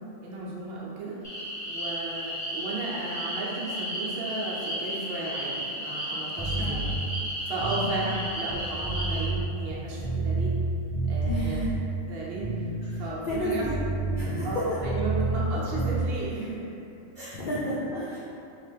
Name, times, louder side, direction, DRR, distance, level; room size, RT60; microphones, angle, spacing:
voice 1, 0.2-6.8 7.4-10.5 11.1-11.6 12.1-13.7 14.4-16.7 17.2-17.4, right 2 dB, 55° right, -6 dB, 0.9 m, -34 dB
sound 1, 1.2-9.3, equal, 15° left, 0.8 m, -34 dB
sound 2, 6.4-7.0 7.5-10.7 10.9-11.8 12.3-15.5 15.7-16.0, right 2 dB, 5° right, 0.4 m, -29 dB
voice 2, 6.5-6.8 7.8-8.0 11.3-11.7 12.9-13.7 14.1-14.7 17.2-18.2, equal, 55° left, -8 dB, 0.5 m, -32 dB
2.9 x 2.8 x 3.4 m, 2.8 s
omnidirectional pair, 1.3 m